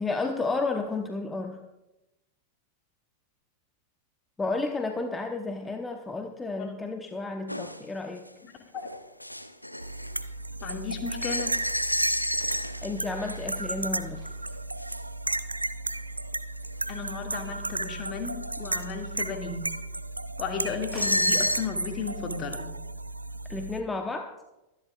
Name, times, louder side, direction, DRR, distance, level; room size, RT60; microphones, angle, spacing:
voice 1, 0.0-1.6 4.4-8.3 12.8-14.3 23.5-24.4, left 3 dB, 10° left, 5 dB, 0.8 m, -32 dB
sound 1, 7.5-7.8 8.3-8.4 8.8-10.2 10.6-13.6 14.8-15.0 16.6-16.7 17.3-17.4 18.0-18.1 18.4-18.9 20.9-21.7, equal, 90° left, 0.7 m, -30 dB
sound 2, 9.8-23.8, right 2 dB, 85° right, 0.4 m, -34 dB
voice 2, 10.6-11.5 16.9-19.6 20.4-22.7, left 5 dB, 35° left, 3 dB, 2.1 m, -34 dB
sound 3, 13.3-18.3 20.9-22.3, right 2 dB, 15° right, 5.4 m, -53 dB
24.0 x 10.5 x 2.4 m, 0.97 s
figure-of-eight pair, 90°, 0 cm